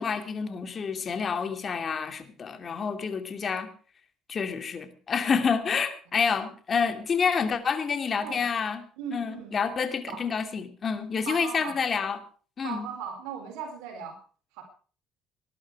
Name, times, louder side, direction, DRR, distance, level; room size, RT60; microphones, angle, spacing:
voice 1, 0.0-3.7 4.3-8.8 9.1-12.2 12.6-12.9, left 6 dB, 40° left, 8 dB, 2.7 m, -28 dB
voice 2, 9.0-9.6 10.1-10.2 11.3-11.8 12.6-14.2 14.5-14.6, right 7 dB, 85° right, 3 dB, 4.3 m, -37 dB
19.5 x 11.5 x 4.7 m, 0.40 s
supercardioid pair, 90°, 0 cm